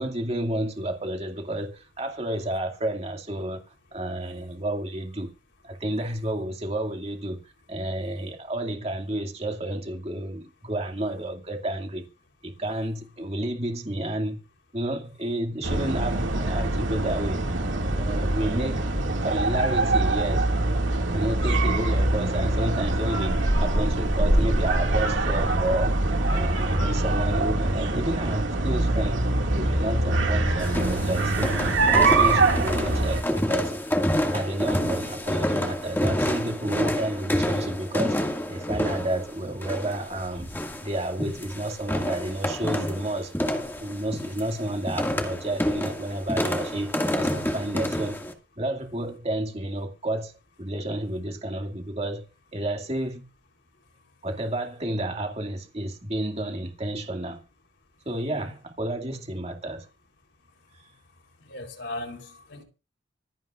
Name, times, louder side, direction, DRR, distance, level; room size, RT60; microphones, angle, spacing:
voice 1, 0.0-3.6 3.9-5.3 5.6-7.4 7.7-12.0 12.4-14.4 14.7-17.4 17.9-18.8 19.2-20.5 21.1-26.0 26.3-29.2 29.5-31.5 31.9-33.7 34.3-40.5 40.8-43.3 43.8-48.2 48.6-50.3 50.6-53.2 54.2-57.4 58.1-59.9, right 1 dB, 35° right, 2.3 m, -30 dB
sound 1, 15.6-33.2, right 2 dB, 80° right, 2.3 m, -24 dB
sound 2, 30.6-48.3, equal, 10° left, 2.1 m, -28 dB
voice 2, 61.4-62.6, left 2 dB, 65° left, 3.8 m, -37 dB
25.5 x 9.2 x 2.5 m
head